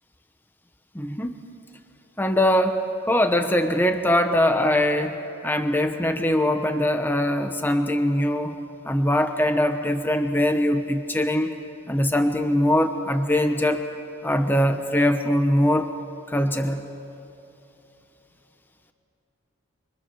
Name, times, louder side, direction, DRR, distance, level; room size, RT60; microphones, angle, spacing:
voice 1, 0.9-1.4 2.2-5.2 5.4-8.5 8.9-11.5 11.9-13.8 14.2-15.9 16.3-16.8, left 1 dB, 10° left, 7 dB, 1.1 m, -22 dB
28.5 x 26.0 x 7.1 m, 2.9 s
head